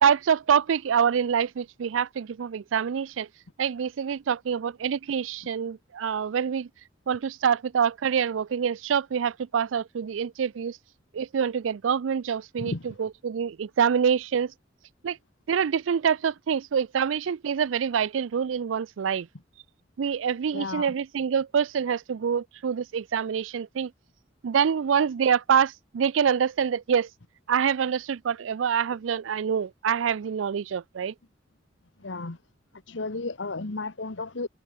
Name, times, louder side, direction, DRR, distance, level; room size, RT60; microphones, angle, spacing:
voice 1, 0.0-3.3 3.6-6.7 7.1-10.8 11.1-14.5 15.0-15.2 15.5-19.3 20.0-23.9 24.4-27.1 27.5-31.1, right 7 dB, 85° right, 0.4 m, -26 dB
voice 2, 20.5-20.9 32.0-32.4 32.9-34.5, left 3 dB, 75° left, 1.3 m, -33 dB
head